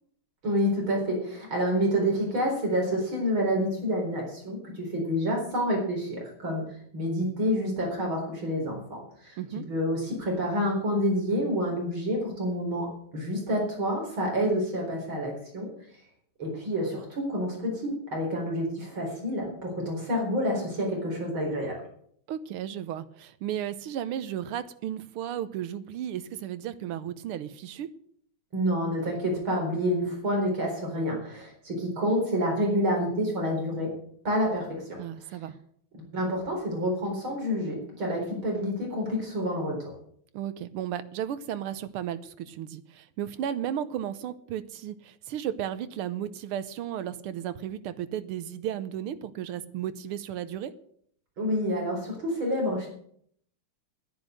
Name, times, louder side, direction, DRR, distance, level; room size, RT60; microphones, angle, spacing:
voice 1, 0.4-6.6 6.9-9.4 9.7-12.9 13.1-15.7 16.4-21.8 28.5-33.9 34.2-35.0 36.1-39.9 51.4-52.9, equal, 65° right, 0 dB, 5.0 m, -28 dB
voice 2, 22.3-27.9 35.0-35.6 40.3-50.7, right 10 dB, 85° right, 13 dB, 1.8 m, -34 dB
10.5 x 10.0 x 7.7 m, 0.65 s
omnidirectional pair, 2.4 m